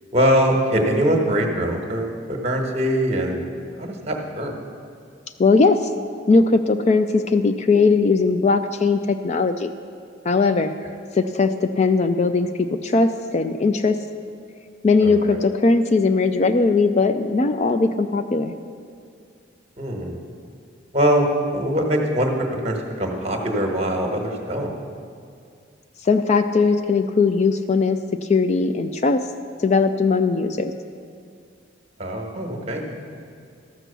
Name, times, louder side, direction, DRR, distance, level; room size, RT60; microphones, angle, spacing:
voice 1, 0.1-3.4 3.8-4.5 15.0-15.4 19.8-20.2 20.9-22.3 22.6-24.7 32.0-32.8, equal, 35° right, 2 dB, 1.3 m, -22 dB
voice 2, 5.4-5.9 6.3-9.7 10.3-10.7 11.1-14.0 14.8-18.5 26.0-28.0 28.3-29.2 29.6-30.7, left 4 dB, 35° left, 9 dB, 0.3 m, -19 dB
13.5 x 6.1 x 6.8 m, 2.3 s
head